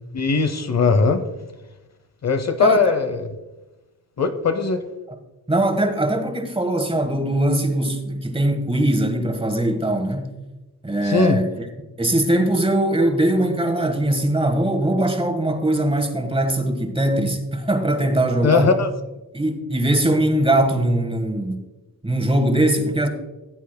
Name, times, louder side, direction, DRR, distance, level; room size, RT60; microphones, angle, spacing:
voice 1, 0.1-1.2 2.2-3.3 4.2-4.8 11.0-11.4 18.4-18.9, left 4 dB, 45° left, 0.7 m, -19 dB
voice 2, 2.6-3.0 5.5-10.3 10.8-18.8 19.3-21.6 22.0-23.1, right 1 dB, 15° right, 1.4 m, -21 dB
16.5 x 8.2 x 2.2 m
cardioid pair, 90°, 37 cm